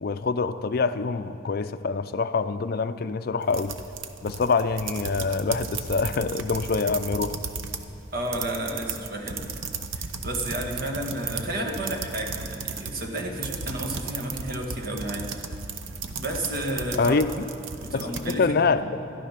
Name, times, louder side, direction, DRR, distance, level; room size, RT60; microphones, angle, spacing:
voice 1, 0.0-3.7 4.2-7.4 17.0-17.3 17.9-18.8, left 4 dB, 50° left, 11 dB, 0.4 m, -25 dB
sound 1, 3.4-7.9 8.2-18.4, right 5 dB, 90° right, 0.8 m, -35 dB
voice 2, 8.1-9.6 9.9-15.3 16.1-17.2 17.8-18.9, right 1 dB, 50° right, 1 dB, 1.6 m, -32 dB
12.5 x 12.5 x 5.8 m, 3.0 s
head